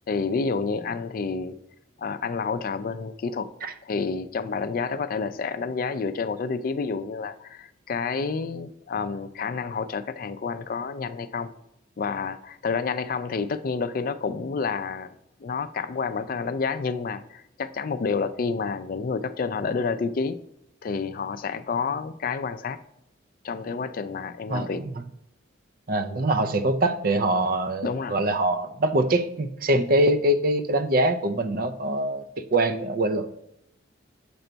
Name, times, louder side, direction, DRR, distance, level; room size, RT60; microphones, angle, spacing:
voice 1, 0.1-1.6 2.0-3.5 3.8-11.5 12.0-15.1 15.4-20.4 20.8-22.8 23.4-24.8 27.8-28.2, left 5 dB, 45° left, 11 dB, 0.4 m, -29 dB
voice 2, 24.5-24.9 25.9-33.3, right 1 dB, 45° right, 9 dB, 0.5 m, -24 dB
6.8 x 4.5 x 3.9 m, 0.81 s
head